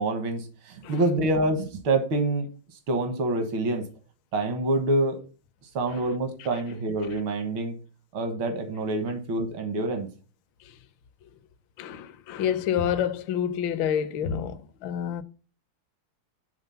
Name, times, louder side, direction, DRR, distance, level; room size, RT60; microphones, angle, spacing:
voice 1, 0.0-2.5 2.9-3.8 4.3-5.2 5.7-7.8 8.1-10.1, right 2 dB, 75° right, 2.2 m, -26 dB
voice 2, 11.8-15.2, left 9 dB, 70° left, 1.4 m, -28 dB
10.0 x 3.7 x 5.6 m
omnidirectional pair, 2.3 m